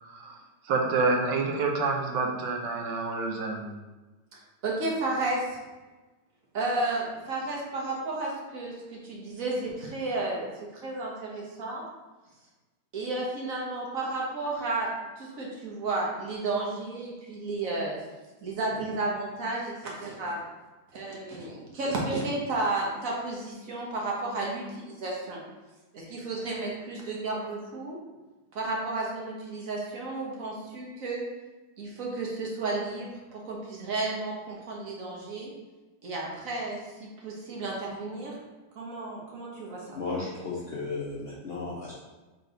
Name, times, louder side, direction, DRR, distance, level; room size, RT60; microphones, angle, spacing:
voice 1, 0.0-3.8, right 3 dB, 80° right, 2 dB, 1.3 m, -28 dB
voice 2, 4.3-5.5 6.5-11.8 12.9-17.9 18.4-20.4 20.9-25.4 25.9-28.0 28.5-31.3 31.8-35.5 36.0-38.3 38.8-40.0, right 2 dB, 55° right, -3 dB, 1.3 m, -32 dB
voice 3, 39.9-41.9, left 3 dB, 60° left, -6 dB, 0.6 m, -34 dB
4.0 x 3.3 x 3.9 m, 1.2 s
omnidirectional pair, 1.9 m